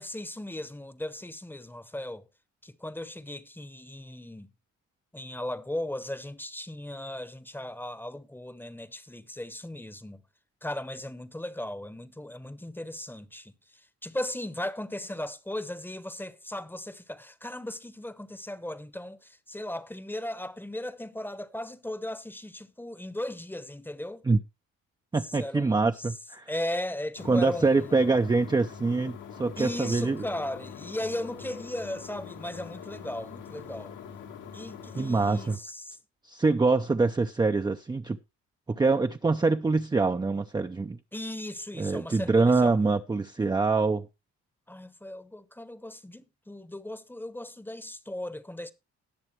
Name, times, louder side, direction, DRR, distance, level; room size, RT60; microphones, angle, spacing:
voice 1, 0.0-2.2 2.6-4.5 5.1-10.2 10.6-24.2 25.2-26.1 26.5-28.0 29.6-34.0 34.5-36.0 41.1-42.8 44.7-48.7, left 1 dB, 5° left, 0.9 m, -37 dB
voice 2, 25.1-26.4 27.3-30.2 35.0-35.6 36.3-38.2 38.7-41.0 41.8-44.1, right 3 dB, 15° right, 0.5 m, -25 dB
sound 1, 27.2-35.6, left 7 dB, 80° left, 2.0 m, -44 dB
19.5 x 6.7 x 3.1 m
cardioid pair, 90°, 30 cm